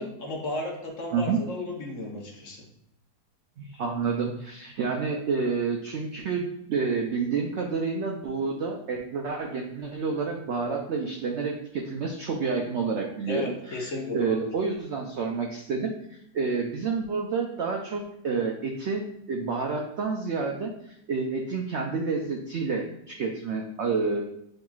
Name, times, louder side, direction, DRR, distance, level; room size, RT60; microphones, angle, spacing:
voice 1, 0.0-2.7 13.3-14.5, left 1 dB, 55° left, 0 dB, 1.1 m, -33 dB
voice 2, 3.6-24.2, right 4 dB, 85° right, 2 dB, 0.6 m, -29 dB
7.7 x 2.9 x 2.3 m, 0.78 s
omnidirectional pair, 1.8 m